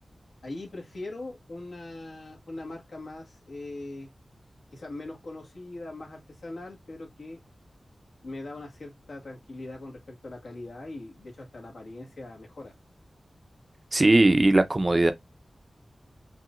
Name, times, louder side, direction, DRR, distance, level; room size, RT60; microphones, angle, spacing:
voice 1, 0.4-4.1 4.7-7.4 8.2-12.7, left 2 dB, 75° left, 1.7 m, -41 dB
voice 2, 13.9-15.1, right 2 dB, 30° right, 0.5 m, -19 dB
5.8 x 2.7 x 2.5 m
wide cardioid pair, 110°, 0 cm